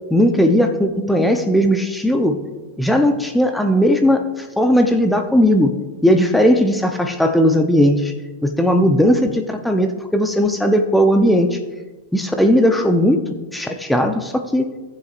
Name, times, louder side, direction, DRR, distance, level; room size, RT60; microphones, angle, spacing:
voice 1, 0.1-2.4 2.8-4.2 4.6-5.8 6.0-8.1 8.4-11.6 12.1-13.2 13.5-14.7, equal, 5° left, 5 dB, 0.8 m, -17 dB
18.0 x 7.3 x 2.6 m, 1.2 s
figure-of-eight pair, 90°, 0 cm